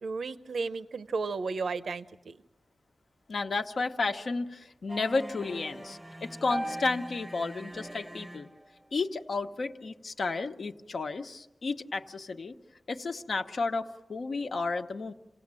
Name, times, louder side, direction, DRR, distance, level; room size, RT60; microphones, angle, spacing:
voice 1, 0.0-2.4, right 4 dB, 90° right, 12 dB, 0.7 m, -33 dB
voice 2, 3.3-8.5 8.9-12.5 12.9-15.1, left 3 dB, 70° left, 6 dB, 1.1 m, -32 dB
sound 1, 4.9-8.8, right 1 dB, 10° right, 0.7 m, -40 dB
27.5 x 17.5 x 7.6 m, 1.0 s
wide cardioid pair, 80°, 0 cm